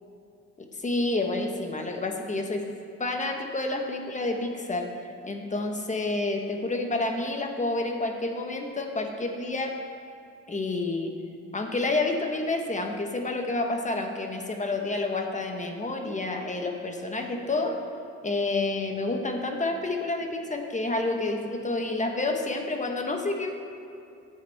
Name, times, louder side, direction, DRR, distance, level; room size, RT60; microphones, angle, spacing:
voice 1, 0.6-2.6 3.0-4.9 5.2-9.7 10.5-11.1 11.5-17.8 18.2-23.5, left 2 dB, 25° left, 3 dB, 1.2 m, -29 dB
13.5 x 8.3 x 3.5 m, 2.6 s
cardioid pair, 90°, 30 cm